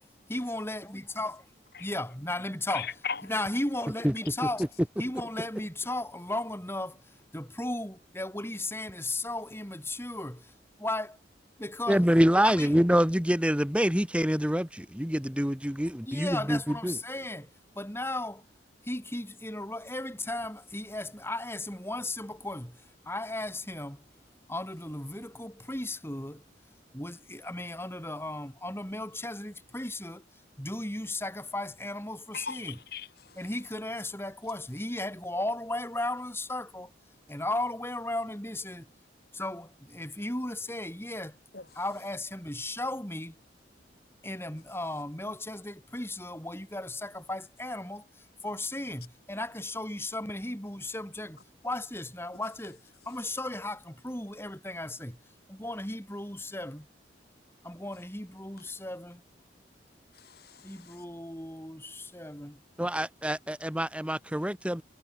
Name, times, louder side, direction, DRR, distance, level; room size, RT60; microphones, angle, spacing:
voice 1, 0.3-1.4 1.8-2.9 3.2-4.7 5.0-7.0 7.3-10.5 10.8-11.2 11.6-12.1 12.4-12.7 16.1-17.5 17.8-18.4 18.8-24.0 24.5-26.4 26.9-30.2 30.6-32.8 33.4-36.9 37.3-38.9 39.3-41.4 41.8-43.3 44.2-48.1 48.4-51.4 51.6-52.8 53.1-55.2 55.5-56.9 57.6-59.2 60.6-62.6, left 1 dB, 15° left, 6.9 m, -35 dB
voice 2, 2.7-3.2 32.3-33.4 41.5-41.7 60.1-61.0, left 6 dB, 60° left, 5.3 m, -38 dB
voice 3, 11.9-17.0 62.8-64.8, equal, 5° right, 1.8 m, -26 dB
head